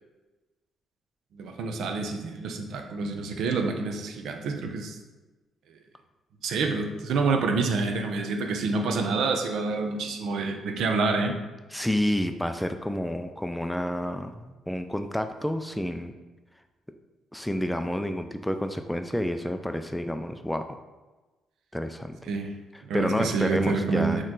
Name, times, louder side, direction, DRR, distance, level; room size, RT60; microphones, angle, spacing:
voice 1, 1.3-5.0 6.4-11.3 22.2-22.5 22.8-24.2, right 4 dB, 75° right, 4 dB, 0.6 m, -27 dB
voice 2, 11.7-16.1 17.3-20.7 21.7-22.2 22.9-24.2, equal, 5° left, 7 dB, 0.3 m, -29 dB
4.3 x 3.1 x 3.8 m, 1.2 s
cardioid pair, 90°, 0 cm